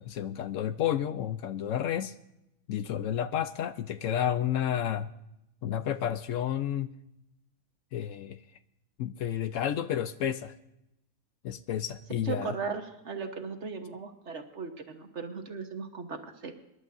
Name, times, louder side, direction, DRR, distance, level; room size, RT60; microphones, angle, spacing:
voice 1, 0.0-2.1 2.7-5.1 5.6-6.9 7.9-8.4 9.0-10.5 11.4-12.5, left 10 dB, 70° left, 12 dB, 0.9 m, -31 dB
voice 2, 12.2-16.5, right 5 dB, 55° right, 6 dB, 1.5 m, -37 dB
25.5 x 11.0 x 2.6 m, 0.87 s
omnidirectional pair, 1.5 m